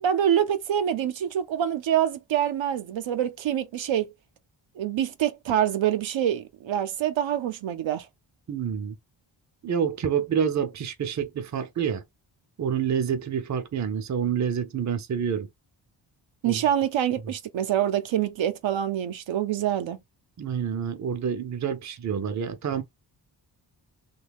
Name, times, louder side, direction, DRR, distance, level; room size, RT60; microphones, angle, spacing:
voice 1, 0.0-4.1 4.8-8.1 16.4-20.0, right 10 dB, 80° right, 0.6 m, -26 dB
voice 2, 8.5-8.9 9.6-12.0 12.6-15.5 16.5-16.6 20.4-22.8, right 7 dB, 40° right, 0.5 m, -28 dB
3.1 x 2.3 x 3.3 m
wide cardioid pair, 145°, 45 cm